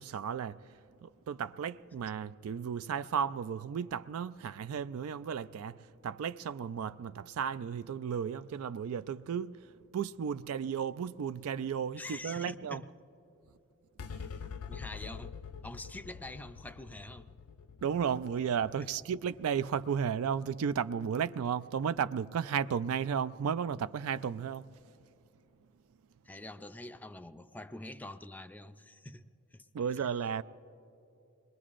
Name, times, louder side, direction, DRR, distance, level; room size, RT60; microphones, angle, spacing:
voice 1, 0.0-5.8 6.0-9.6 9.9-12.8 17.8-24.7 29.7-30.4, right 7 dB, 70° right, 0.3 m, -34 dB
voice 2, 12.0-12.9 14.7-15.3 15.6-17.3 18.8-18.9 26.2-29.3 29.5-29.7, left 1 dB, 5° left, 0.4 m, -45 dB
sound 1, 14.0-20.7, left 6 dB, 80° left, 0.6 m, -46 dB
26.5 x 21.5 x 2.5 m
head